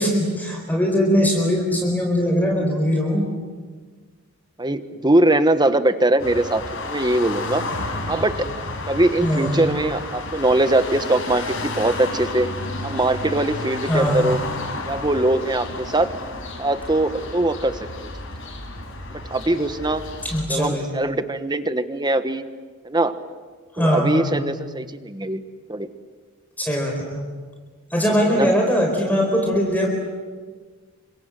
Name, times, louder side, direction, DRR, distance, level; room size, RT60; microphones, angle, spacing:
voice 1, 0.0-3.3 9.2-9.6 13.9-14.3 20.2-20.9 23.8-24.4 26.6-27.3 27.9-29.9, equal, 10° left, 0 dB, 4.4 m, -21 dB
voice 2, 4.6-7.6 8.1-12.5 12.8-14.4 14.8-16.1 16.6-18.1 19.1-20.0 20.5-22.4 22.8-23.1 23.8-25.4 25.7-25.9 28.3-28.5, right 2 dB, 20° right, 10 dB, 1.2 m, -21 dB
sound 1, 6.2-20.4, left 2 dB, 60° left, 5.3 m, -32 dB
29.0 x 25.5 x 7.7 m, 1.5 s
head